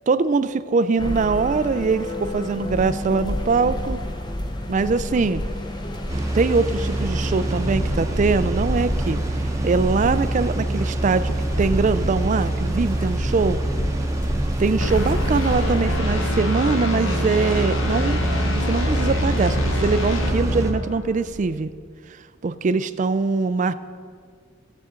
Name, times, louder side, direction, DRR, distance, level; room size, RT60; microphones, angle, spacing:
voice 1, 0.1-4.0 4.7-5.4 6.3-9.2 9.6-13.6 14.6-18.2 18.6-21.7 22.4-23.7, right 4 dB, 40° right, 13 dB, 0.3 m, -22 dB
sound 1, 1.0-16.1, left 1 dB, 20° left, 0.7 m, -30 dB
sound 2, 6.1-20.7, right 1 dB, 15° right, 0.8 m, -25 dB
sound 3, 14.8-21.3, left 2 dB, 75° left, 1.1 m, -28 dB
17.0 x 7.6 x 3.7 m, 2.1 s
head